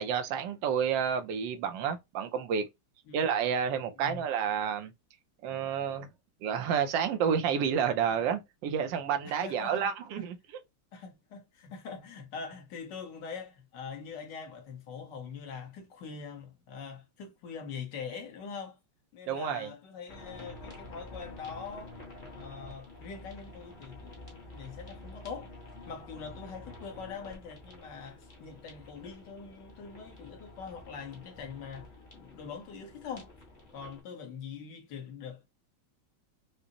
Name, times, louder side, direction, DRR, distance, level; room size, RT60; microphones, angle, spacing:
voice 1, 0.0-2.6 3.1-4.9 5.4-6.1 6.4-10.4 19.3-19.7, right 7 dB, 70° right, 1.1 m, -30 dB
voice 2, 9.2-10.2 10.9-18.8 19.1-22.0 22.3-25.6 25.9-33.3 33.7-35.5, left 6 dB, 60° left, 1.5 m, -43 dB
sound 1, 20.1-34.0, left 2 dB, 30° left, 1.0 m, -49 dB
5.1 x 2.0 x 2.7 m
omnidirectional pair, 2.4 m